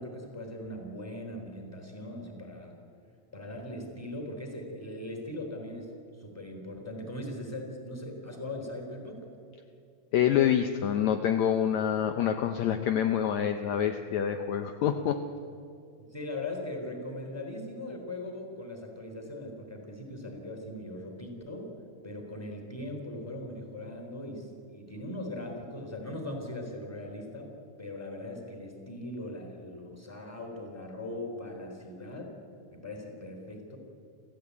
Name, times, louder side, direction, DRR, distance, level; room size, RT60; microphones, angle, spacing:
voice 1, 0.0-2.7 3.3-9.3 16.1-21.7 22.0-27.5 27.8-32.3 32.7-33.8, left 1 dB, 5° left, 2 dB, 3.2 m, -40 dB
voice 2, 10.1-15.2, left 9 dB, 80° left, 7 dB, 1.6 m, -26 dB
27.5 x 15.0 x 8.4 m, 2.3 s
omnidirectional pair, 4.2 m